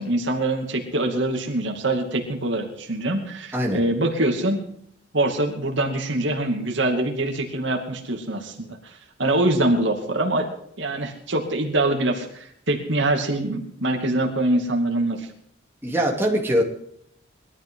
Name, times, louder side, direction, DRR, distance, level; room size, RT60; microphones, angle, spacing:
voice 1, 0.0-4.6 5.1-8.9 9.2-10.5 10.8-15.3, right 1 dB, 65° right, 3 dB, 2.6 m, -24 dB
voice 2, 15.8-16.6, equal, 10° right, -1 dB, 3.2 m, -22 dB
21.5 x 13.0 x 3.9 m, 0.69 s
head